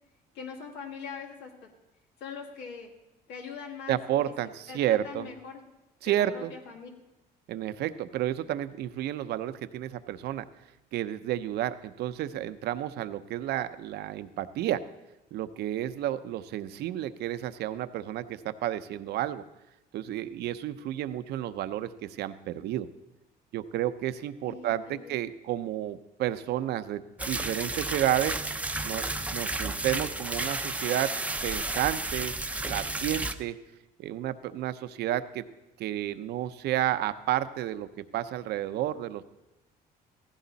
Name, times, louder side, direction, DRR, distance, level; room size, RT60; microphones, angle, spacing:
voice 1, 0.3-1.7 2.2-2.9 3.3-5.6 6.0-6.9 24.5-25.1, left 5 dB, 90° left, 1 dB, 2.3 m, -42 dB
voice 2, 3.9-5.3 6.0-6.5 7.5-10.4 10.9-14.8 15.3-19.4 19.9-22.9 23.5-28.3 28.8-31.1 31.4-33.6 34.0-35.4 35.8-39.2, right 12 dB, 75° right, 12 dB, 0.8 m, -31 dB
sound 1, 27.2-33.3, right 2 dB, 10° right, 0.7 m, -32 dB
16.0 x 15.5 x 4.1 m, 1.0 s
cardioid pair, 110°, 17 cm